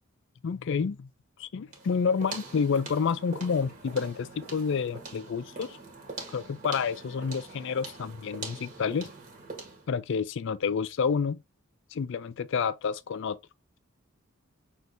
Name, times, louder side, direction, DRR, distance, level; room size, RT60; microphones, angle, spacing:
voice 1, 0.4-1.1 1.4-5.8 6.3-9.1 9.9-11.4 11.9-13.4, left 6 dB, 60° left, 0.4 m, -29 dB
sound 1, 1.7-9.9, right 3 dB, 40° right, 1.6 m, -43 dB
6.0 x 3.2 x 2.6 m
head